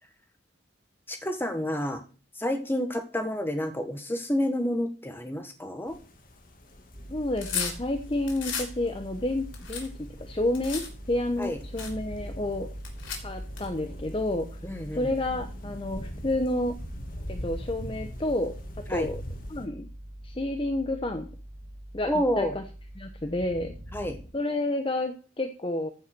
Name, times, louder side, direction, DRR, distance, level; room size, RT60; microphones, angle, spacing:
voice 1, 1.1-2.0 2.3-6.0 11.4-11.6 14.6-15.1 18.9-19.1 22.1-22.5 23.9-24.2, equal, 10° left, 6 dB, 1.4 m, -29 dB
sound 1, 5.9-19.7, equal, 45° left, 1.8 m, -43 dB
sound 2, 6.9-24.3, right 1 dB, 45° right, 5.7 m, -43 dB
voice 2, 7.1-10.8 11.1-12.7 13.2-14.6 14.9-16.7 17.3-18.5 18.9-19.2 19.5-19.9 20.2-21.3 21.9-22.6 23.0-23.7 24.3-25.9, left 1 dB, 25° left, 6 dB, 0.9 m, -30 dB
sound 3, 7.2-8.7 9.2-10.9 11.4-11.5 11.8-12.0 12.8-13.7, left 6 dB, 80° left, 3.5 m, -35 dB
14.5 x 5.5 x 6.1 m, 0.37 s
head